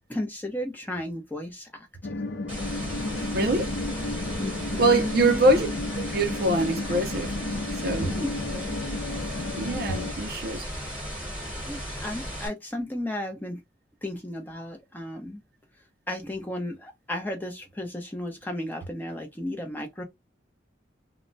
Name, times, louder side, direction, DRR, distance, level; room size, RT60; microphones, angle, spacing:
voice 1, 0.1-1.9 2.1-2.2 4.4-5.4 8.1-8.8 9.9-10.0 11.6-13.6 14.0-15.4 16.1-20.0, left 1 dB, 10° left, 0.7 m, -34 dB
sound 1, 2.0-10.1, left 2 dB, 60° left, 0.5 m, -33 dB
sound 2, 2.5-12.5, equal, 5° right, 1.2 m, -35 dB
voice 2, 3.3-3.7 4.6-5.7 5.9-7.3 7.8-8.2 9.6-10.7, right 2 dB, 50° right, 0.5 m, -24 dB
2.2 x 2.1 x 3.8 m
head